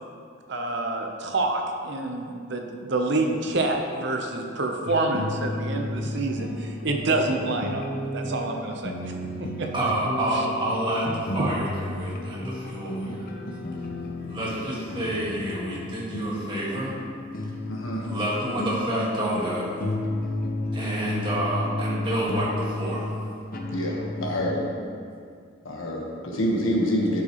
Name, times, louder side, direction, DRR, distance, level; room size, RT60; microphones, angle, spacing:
voice 1, 0.5-7.9 8.1-9.7 11.4-11.5, right 2 dB, 60° right, 3 dB, 0.8 m, -27 dB
sound 1, 4.8-24.7, left 1 dB, 45° left, 0.7 m, -33 dB
voice 2, 9.7-13.3 14.2-17.0 18.0-19.8 20.7-23.1, right 1 dB, 25° right, -6 dB, 1.8 m, -28 dB
voice 3, 17.6-18.0 23.7-23.9 24.2-24.6 25.6-27.2, equal, 80° left, -2 dB, 1.4 m, -26 dB
11.5 x 6.2 x 3.1 m, 2.3 s
head